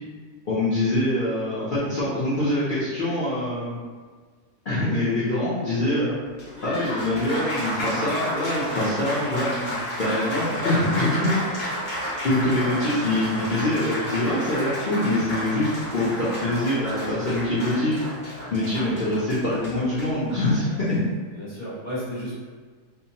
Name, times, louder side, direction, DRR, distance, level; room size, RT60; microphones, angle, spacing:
voice 1, 0.5-3.8 4.6-6.1 6.6-9.5 10.0-11.3 12.2-18.0 18.5-21.0, left 1 dB, 75° left, -12 dB, 0.4 m, -24 dB
Applause, 6.2-20.9, equal, 40° left, 1.0 m, -31 dB
voice 2, 13.1-13.4 18.8-18.9 21.3-22.4, equal, 15° left, -11 dB, 0.5 m, -34 dB
2.8 x 2.1 x 2.7 m, 1.5 s
omnidirectional pair, 1.8 m